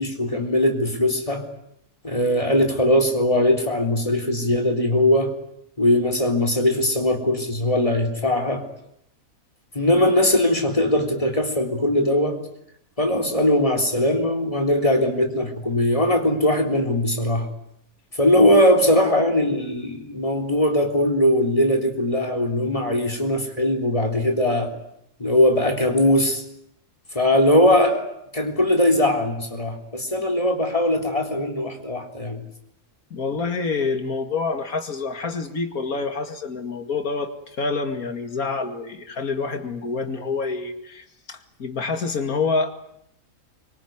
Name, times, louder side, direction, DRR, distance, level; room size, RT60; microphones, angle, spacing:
voice 1, 0.0-1.4 2.0-5.3 5.8-8.6 9.8-12.4 13.0-17.5 18.2-24.7 25.2-26.4 27.1-28.1 28.3-32.4, left 1 dB, 25° left, 3 dB, 3.7 m, -20 dB
voice 2, 33.1-37.3 37.6-42.9, left 4 dB, 75° left, 7 dB, 2.7 m, -27 dB
25.5 x 23.5 x 9.5 m, 0.76 s
omnidirectional pair, 1.5 m